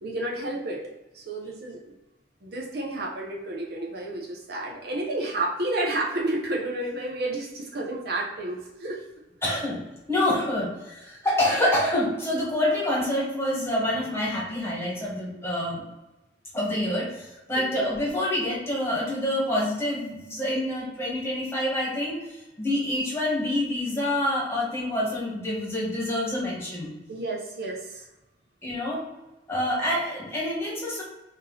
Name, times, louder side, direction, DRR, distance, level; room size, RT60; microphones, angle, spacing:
voice 1, 0.0-1.9 2.4-9.0 9.5-9.6 17.5-17.8 27.1-28.1, right 2 dB, 60° right, -2 dB, 0.7 m, -31 dB
voice 2, 9.4-9.8 10.1-15.8 16.5-26.9 28.6-29.0 29.5-31.0, left 1 dB, 15° left, -5 dB, 1.3 m, -27 dB
3.7 x 2.7 x 3.8 m, 1.0 s
head